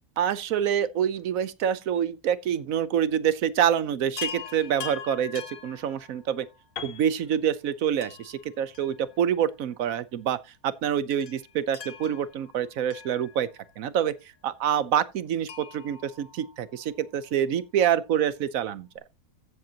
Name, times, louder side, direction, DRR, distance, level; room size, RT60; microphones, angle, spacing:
voice 1, 0.2-6.5 6.8-10.4 10.6-13.5 13.8-14.1 14.4-18.9, right 9 dB, 65° right, 1.1 m, -26 dB
Chime, 4.2-6.6 8.0-9.5 9.8-9.9 11.1-13.8 15.5-17.1 18.7-18.8 19.0-19.1, left 7 dB, 60° left, 1.6 m, -42 dB
Piano, 6.8-10.7, left 7 dB, 45° left, 1.0 m, -45 dB
14.5 x 7.7 x 2.8 m
omnidirectional pair, 1.7 m